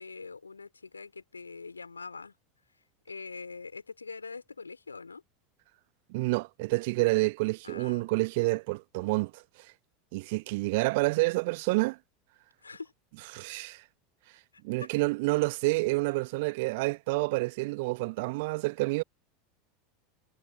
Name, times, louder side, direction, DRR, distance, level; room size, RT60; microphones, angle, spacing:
voice 1, 0.0-2.3 3.1-5.2 7.6-8.1 12.6-12.9 14.8-14.9, left 4 dB, 80° left, 4.1 m, -43 dB
voice 2, 6.1-9.4 10.1-12.0 13.3-13.8 14.6-19.0, right 24 dB, 55° right, 1.0 m, -28 dB
figure-of-eight pair, 80°, 0 cm